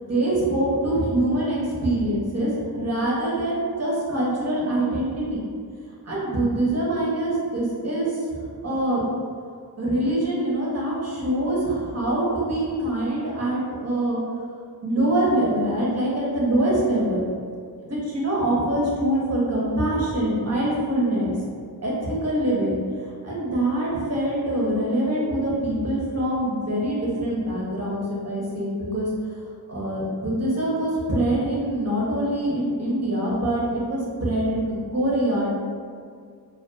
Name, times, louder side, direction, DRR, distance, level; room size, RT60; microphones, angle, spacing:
voice 1, 0.0-5.4 6.0-9.0 9.8-14.2 14.8-17.2 17.8-21.3 21.8-29.4 29.7-35.6, right 1 dB, 40° right, -5 dB, 0.8 m, -24 dB
2.5 x 2.4 x 2.2 m, 2.2 s
cardioid pair, 60°, 41 cm